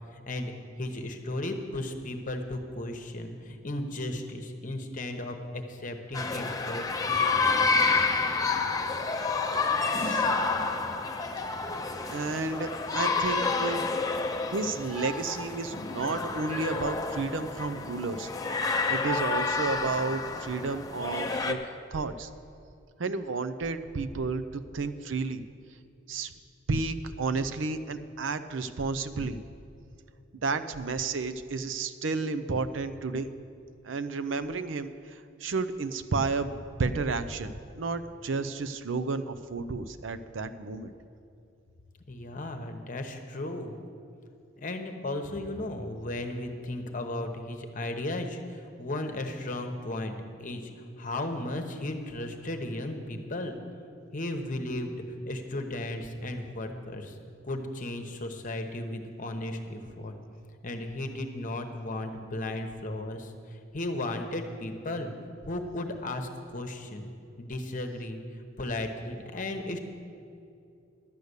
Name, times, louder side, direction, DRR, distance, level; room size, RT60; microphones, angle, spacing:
voice 1, 0.1-0.5 0.8-7.2 42.1-43.8 44.6-50.7 51.0-53.6 54.1-57.2 57.4-60.1 60.6-65.1 65.4-67.1 67.4-68.2 68.6-69.8, left 1 dB, 40° left, 5 dB, 1.0 m, -35 dB
sound 1, 6.1-21.5, left 4 dB, 20° left, 0.6 m, -29 dB
voice 2, 12.1-13.8 14.5-18.3 18.9-21.6 21.9-22.3 23.0-25.4 26.1-26.3 26.7-29.4 30.3-33.3 33.8-36.5 36.8-40.9, right 4 dB, 75° right, 11 dB, 0.6 m, -32 dB
12.0 x 6.6 x 8.2 m, 2.5 s
head